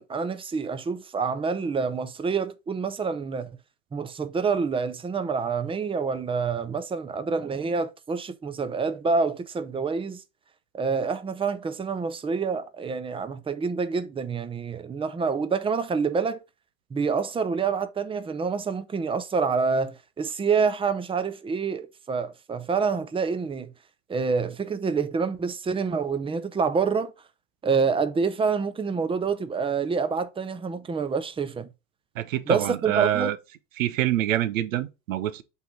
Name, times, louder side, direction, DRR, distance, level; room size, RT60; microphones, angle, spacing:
voice 1, 0.0-3.5 3.9-10.2 10.7-16.4 16.9-23.7 24.1-27.1 27.6-31.7 32.5-33.3, right 5 dB, 15° right, 0.6 m, -27 dB
voice 2, 32.2-33.4 33.8-35.4, right 13 dB, 85° right, 0.7 m, -26 dB
8.2 x 3.2 x 3.7 m
hypercardioid pair, 90°, 40 cm